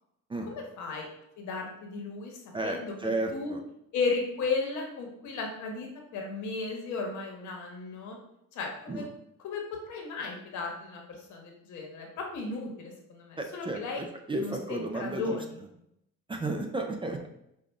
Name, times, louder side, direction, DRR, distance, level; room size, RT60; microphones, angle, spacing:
voice 1, 0.4-1.1 1.4-2.9 3.3-3.5 3.9-8.2 8.5-9.1 9.4-14.0 14.4-15.5, left 4 dB, 75° left, 1 dB, 1.2 m, -35 dB
voice 2, 2.5-3.6 8.9-9.1 13.4-15.4 16.3-17.3, right 2 dB, 15° right, 4 dB, 0.5 m, -33 dB
5.6 x 2.5 x 3.5 m, 0.78 s
cardioid pair, 120°, 30 cm